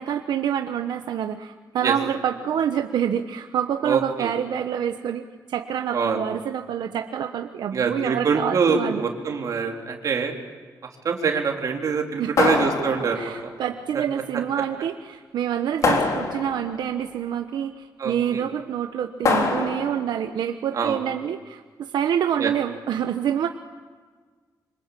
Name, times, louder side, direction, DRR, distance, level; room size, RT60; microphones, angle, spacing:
voice 1, 0.0-9.0 12.2-12.3 13.1-23.5, right 9 dB, 80° right, 6 dB, 1.1 m, -27 dB
voice 2, 3.8-4.3 5.9-6.2 7.7-10.3 11.0-13.3 18.0-18.4 20.7-21.0 22.4-22.5, right 5 dB, 50° right, 2 dB, 3.7 m, -24 dB
sound 1, 12.4-13.4 15.8-16.8 19.2-20.1, left 3 dB, 45° left, 3.7 m, -24 dB
27.0 x 25.5 x 8.6 m, 1.5 s
wide cardioid pair, 160°, 7 cm